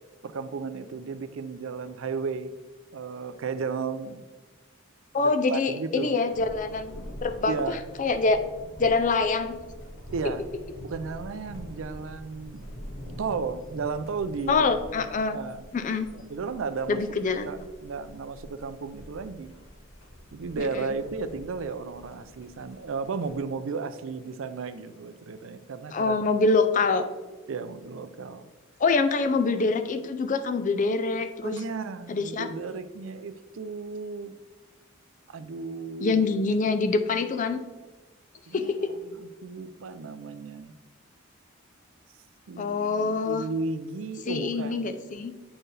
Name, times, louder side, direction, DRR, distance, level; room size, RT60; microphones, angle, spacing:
voice 1, 0.2-2.5 2.9-4.2 5.2-6.1 7.5-7.8 10.1-10.5 10.8-12.7 13.2-14.6 15.0-15.6 16.3-17.0 17.5-19.5 20.3-26.1 27.5-28.5 31.4-34.3 35.3-36.2 38.5-38.7 39.1-40.7 42.5-45.0, right 4 dB, 75° right, 11 dB, 0.4 m, -34 dB
voice 2, 5.1-8.4 8.8-9.5 14.5-15.4 15.7-16.1 16.9-17.5 20.6-20.9 25.9-27.1 28.8-31.5 32.1-32.5 36.0-37.6 38.5-38.9 42.6-43.4 44.3-45.3, left 4 dB, 40° left, 9 dB, 0.4 m, -25 dB
Thunder, 6.3-23.4, equal, 75° left, 1.0 m, -45 dB
8.6 x 4.5 x 3.3 m, 1.2 s
head